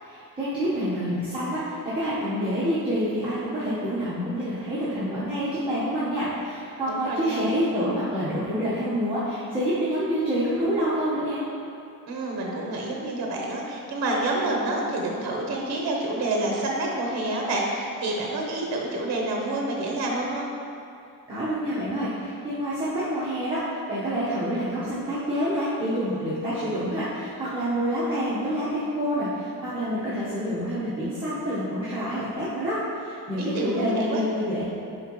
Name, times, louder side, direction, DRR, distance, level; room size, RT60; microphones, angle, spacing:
voice 1, 0.0-11.4 21.3-23.6 23.9-34.6, equal, 15° right, -13 dB, 1.1 m, -27 dB
voice 2, 6.9-7.4 12.1-20.5 33.4-34.2, right 2 dB, 50° right, -1 dB, 0.9 m, -28 dB
10.0 x 3.8 x 3.1 m, 2.5 s
wide cardioid pair, 175°, 36 cm